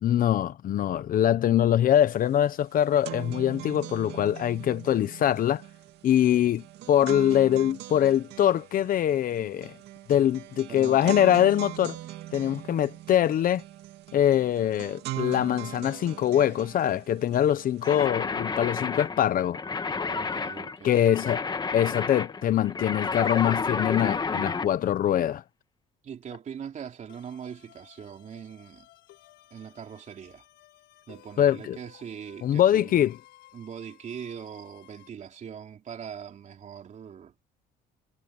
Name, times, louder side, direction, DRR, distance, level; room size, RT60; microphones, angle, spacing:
voice 1, 0.0-5.6 6.0-9.7 10.1-12.0 12.3-13.6 14.1-19.6 20.8-21.4 21.7-25.4 31.4-31.8 32.4-33.2, left 10 dB, 55° left, 1.1 m, -23 dB
sound 1, 2.1-2.2 2.5-18.1, right 15 dB, 80° right, 2.3 m, -41 dB
voice 2, 10.7-11.2 20.0-21.3 26.0-28.9 29.5-30.5 31.1-33.1 33.5-37.3, right 8 dB, 45° right, 3.6 m, -41 dB
sound 2, 17.8-24.7, left 4 dB, 25° left, 1.8 m, -31 dB
sound 3, 27.1-35.1, left 15 dB, 80° left, 6.6 m, -56 dB
cardioid pair, 110°, 17 cm